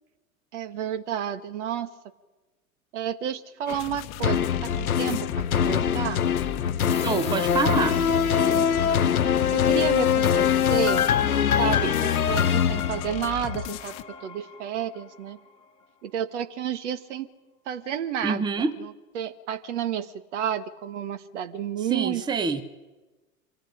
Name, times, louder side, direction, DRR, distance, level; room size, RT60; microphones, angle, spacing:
voice 1, 0.5-1.9 2.9-6.2 9.5-11.1 11.6-15.4 16.0-17.3 17.6-18.4 18.8-22.2, right 9 dB, 55° right, 1.7 m, -31 dB
sound 1, 3.7-14.0, left 10 dB, 40° left, 1.2 m, -36 dB
sound 2, 4.2-13.6 14.1-14.2, left 8 dB, 80° left, 0.8 m, -23 dB
sound 3, 6.9-16.5, left 4 dB, 15° left, 1.7 m, -41 dB
voice 2, 7.0-8.0 18.2-18.8 21.9-22.6, right 4 dB, 10° right, 1.1 m, -26 dB
25.5 x 15.0 x 9.9 m
figure-of-eight pair, 90°, 43 cm